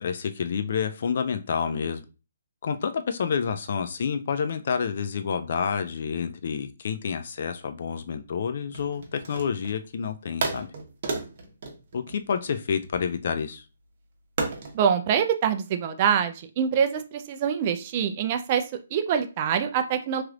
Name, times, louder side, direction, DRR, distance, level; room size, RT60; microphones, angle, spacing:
voice 1, 0.0-2.0 2.6-10.7 11.9-13.6, left 6 dB, 55° left, 9 dB, 0.4 m, -29 dB
sound 1, 8.7-9.8 10.4-12.9 14.4-14.8, right 3 dB, 50° right, 0.9 m, -32 dB
voice 2, 14.7-18.6 18.9-20.2, right 8 dB, 35° right, 8 dB, 0.5 m, -25 dB
3.1 x 3.0 x 2.4 m, 0.32 s
hypercardioid pair, 155°, 0 cm